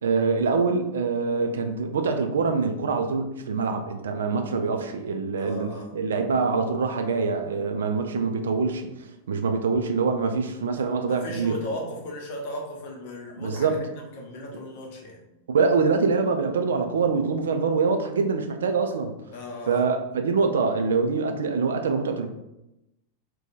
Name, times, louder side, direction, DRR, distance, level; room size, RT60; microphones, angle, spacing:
voice 1, 0.0-8.9 9.3-11.6 13.4-13.8 15.5-19.1 19.7-22.3, right 4 dB, 65° right, 6 dB, 0.3 m, -24 dB
voice 2, 5.4-5.9 11.1-15.2 19.3-19.8, equal, 50° left, -1 dB, 0.8 m, -36 dB
2.6 x 2.2 x 4.1 m, 0.91 s
figure-of-eight pair, 90°, 0 cm